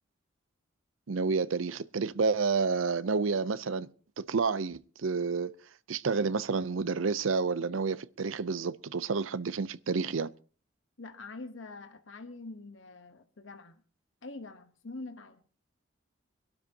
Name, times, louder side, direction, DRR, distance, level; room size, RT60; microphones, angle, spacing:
voice 1, 1.1-3.9 4.2-5.5 5.9-10.3, right 4 dB, 90° right, 0.6 m, -30 dB
voice 2, 11.0-13.8 14.2-15.4, left 3 dB, 80° left, 1.1 m, -45 dB
24.5 x 12.5 x 2.8 m
head